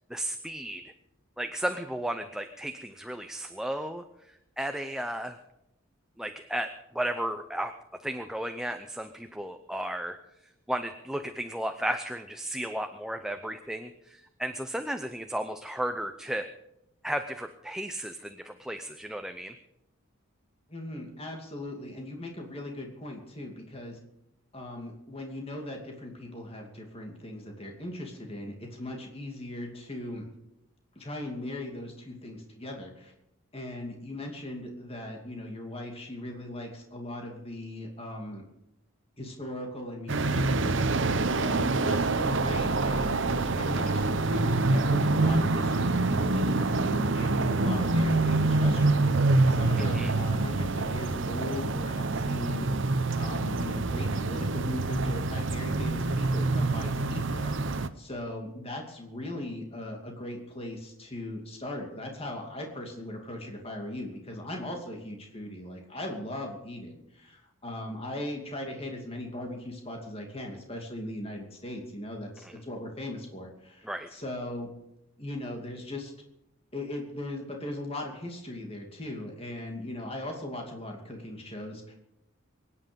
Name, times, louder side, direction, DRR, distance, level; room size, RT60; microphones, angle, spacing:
voice 1, 0.1-0.8 1.4-5.4 6.2-7.7 8.0-16.5 17.0-19.5 49.8-50.1 72.4-72.5 73.8-74.1, right 1 dB, 5° right, 7 dB, 0.6 m, -34 dB
voice 2, 20.7-24.0 24.5-30.3 31.0-33.1 33.5-38.4 39.2-41.0 41.3-49.1 49.5-52.9 53.2-74.7 75.2-76.1 76.7-81.9, left 1 dB, 30° left, 2 dB, 2.6 m, -39 dB
sound 1, 40.1-57.9, right 2 dB, 60° right, 0.8 m, -26 dB
23.5 x 10.0 x 5.3 m, 0.84 s
head